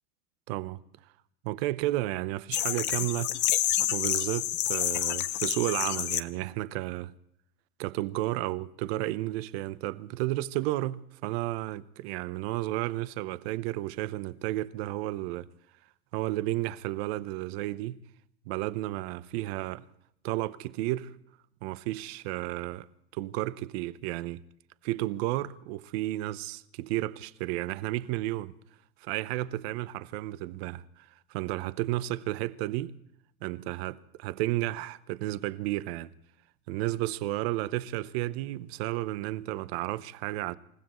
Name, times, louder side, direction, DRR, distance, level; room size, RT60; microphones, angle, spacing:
voice 1, 0.5-0.8 1.4-3.3 3.9-7.1 7.8-15.5 16.1-18.0 18.5-19.9 20.2-21.1 21.6-22.9 23.1-24.4 24.8-28.5 29.0-32.9 33.4-36.1 36.7-40.6, right 16 dB, 50° right, 0.9 m, -32 dB
sound 1, 2.5-6.2, left 13 dB, 30° left, 0.6 m, -28 dB
28.0 x 15.5 x 3.1 m
supercardioid pair, 140°, 40 cm